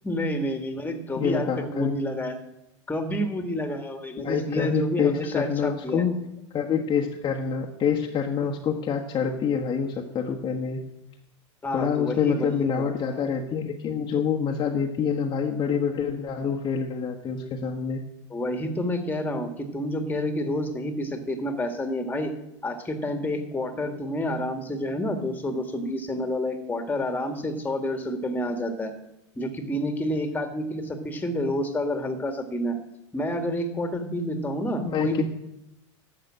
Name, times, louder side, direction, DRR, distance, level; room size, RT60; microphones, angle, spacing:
voice 1, 0.0-2.4 2.9-6.0 8.4-8.5 11.6-12.8 18.3-22.3 22.6-28.9 29.4-32.8 33.1-35.2, left 1 dB, 10° left, 8 dB, 1.9 m, -29 dB
voice 2, 1.2-2.0 4.2-6.1 6.5-10.8 11.7-18.0 34.8-35.2, left 7 dB, 30° left, 0 dB, 1.3 m, -26 dB
12.0 x 7.6 x 7.6 m, 0.86 s
hypercardioid pair, 90°, 16 cm